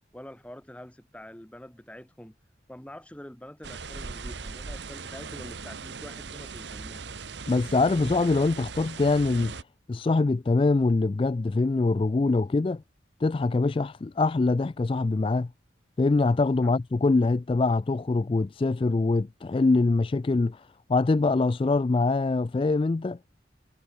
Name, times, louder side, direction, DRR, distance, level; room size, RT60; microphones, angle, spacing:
voice 1, 0.1-2.4 2.7-7.0 16.6-16.7, left 1 dB, 5° left, 0.8 m, -45 dB
sound 1, 3.6-9.6, right 4 dB, 70° right, 1.1 m, -39 dB
voice 2, 7.5-9.5 9.9-12.8 13.2-15.5 16.0-20.6 20.9-23.2, left 3 dB, 30° left, 0.3 m, -24 dB
head